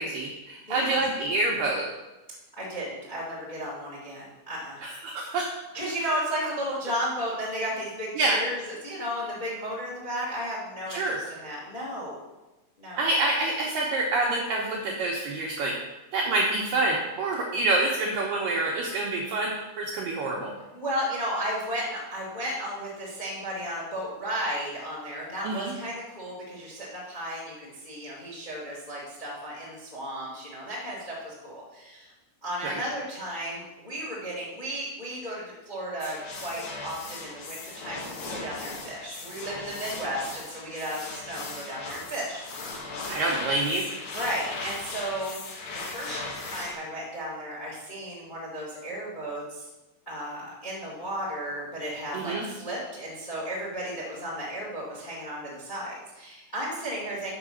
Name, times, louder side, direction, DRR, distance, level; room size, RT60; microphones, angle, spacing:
voice 1, 0.0-1.9 4.8-5.5 8.2-8.4 10.9-11.2 13.0-15.8 16.1-20.5 25.4-25.7 32.6-32.8 43.0-43.9 52.1-52.4, right 2 dB, 80° right, -2 dB, 2.0 m, -27 dB
voice 2, 0.6-1.0 2.6-4.8 5.7-12.2 12.8-13.1 20.7-32.1 32.4-43.1 44.1-45.4 45.7-49.7 50.0-57.3, equal, 25° left, -5 dB, 1.0 m, -34 dB
sound 1, 36.0-46.7, left 3 dB, 70° left, 3.3 m, -38 dB
7.2 x 5.6 x 6.3 m, 1.1 s
omnidirectional pair, 5.1 m